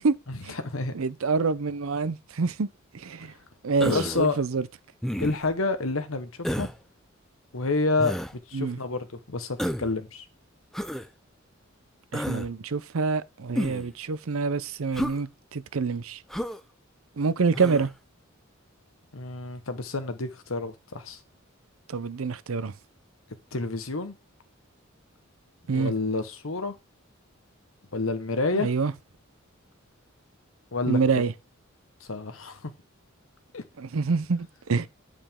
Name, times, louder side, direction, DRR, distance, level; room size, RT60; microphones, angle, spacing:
voice 1, 0.3-0.9 3.8-4.4 5.2-6.7 7.5-8.2 8.5-10.2 19.1-21.2 23.5-24.1 25.7-26.7 27.9-28.7 30.7-31.0 32.0-32.7 33.5-33.6, left 3 dB, 75° left, 1.2 m, -29 dB
voice 2, 0.9-2.7 2.9-3.3 3.6-4.7 8.5-8.8 12.1-16.2 17.2-17.9 21.9-22.7 25.7-25.9 28.5-28.9 30.8-31.3 33.8-34.9, right 4 dB, 90° right, 0.6 m, -26 dB
Human voice, 3.8-4.3 5.0-5.5 6.4-6.8 8.0-8.3 9.6-9.9 10.7-11.1 12.1-12.5 13.5-13.9 14.9-15.2 16.3-16.6 17.5-17.9, equal, ahead, 0.6 m, -30 dB
9.0 x 5.1 x 3.7 m
head